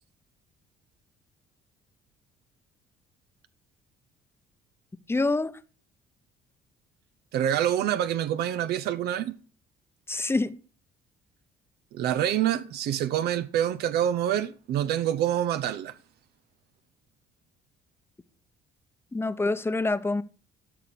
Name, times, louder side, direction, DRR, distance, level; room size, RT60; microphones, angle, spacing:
voice 1, 5.1-5.6 10.1-10.6 19.1-20.2, left 3 dB, 15° left, 0.8 m, -26 dB
voice 2, 7.3-9.4 11.9-15.9, right 11 dB, 75° right, 0.7 m, -26 dB
13.0 x 5.9 x 6.8 m
cardioid pair, 110°, 17 cm